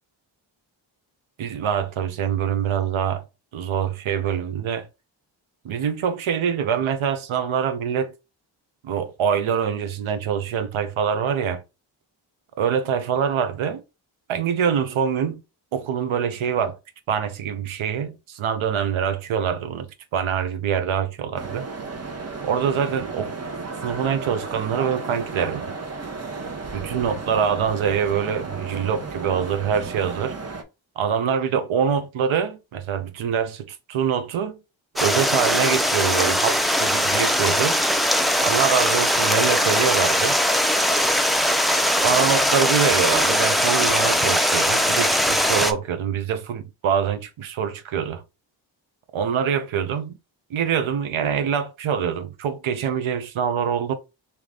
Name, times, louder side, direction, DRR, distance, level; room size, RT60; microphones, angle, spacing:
voice 1, 1.4-3.2 3.5-4.9 5.6-8.1 8.8-11.6 12.6-13.8 14.3-15.4 15.7-16.8 17.1-21.7 22.4-23.4 23.8-25.7 26.7-30.4 31.0-34.6 35.0-37.8 38.4-40.4 42.0-48.2 49.1-50.2 50.5-53.9, right 7 dB, 85° right, 0.7 m, -24 dB
sound 1, 21.4-30.6, right 4 dB, 30° right, 0.8 m, -34 dB
Stream, 35.0-45.7, equal, ahead, 0.4 m, -20 dB
3.3 x 3.0 x 3.6 m
cardioid pair, 60°, 47 cm